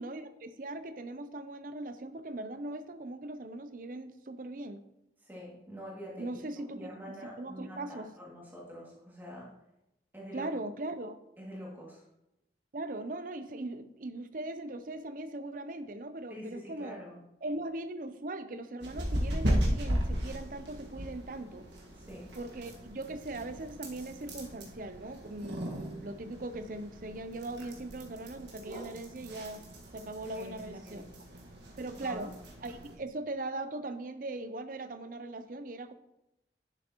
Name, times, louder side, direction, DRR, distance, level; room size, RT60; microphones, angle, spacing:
voice 1, 0.0-4.8 6.2-6.9 7.4-8.1 10.3-11.2 12.7-17.0 17.4-21.6 22.4-29.6 29.9-31.0 31.8-32.3 32.6-35.9, right 2 dB, 50° right, 11 dB, 0.6 m, -40 dB
voice 2, 5.2-6.3 6.6-9.5 10.1-10.5 11.4-12.1 16.3-17.2 21.9-22.3 30.4-31.1 31.9-32.3, equal, 10° right, -4 dB, 2.3 m, -46 dB
sound 1, 18.8-33.0, equal, 80° right, 1.7 m, -37 dB
11.0 x 6.9 x 3.0 m, 0.87 s
head